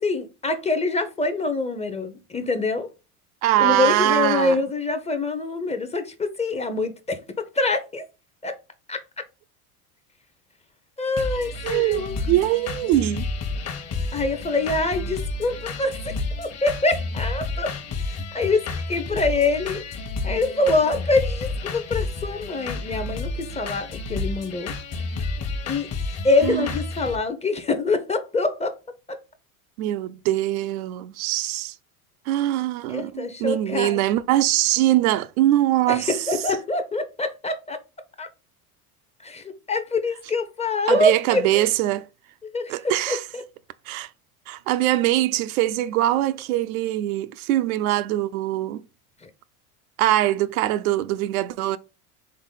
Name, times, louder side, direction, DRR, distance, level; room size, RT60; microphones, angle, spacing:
voice 1, 0.0-2.9 3.6-8.0 8.4-8.5 8.9-9.0 11.0-12.2 14.1-17.7 18.1-19.8 20.2-24.7 25.7-25.9 26.2-28.7 29.1-29.2 32.9-34.0 35.9-37.8 38.2-38.3 39.2-41.6 42.5-43.4 49.2-49.3, left 3 dB, 15° left, 0.6 m, -25 dB
voice 2, 3.4-4.6 11.6-13.3 26.4-26.7 29.8-31.7 32.3-36.2 40.9-42.1 42.7-43.2 43.9-44.1 44.5-48.8 50.0-51.8, right 14 dB, 70° right, 0.5 m, -22 dB
sound 1, 11.2-27.2, left 3 dB, 35° left, 1.0 m, -31 dB
3.8 x 3.6 x 3.6 m
hypercardioid pair, 85°, 44 cm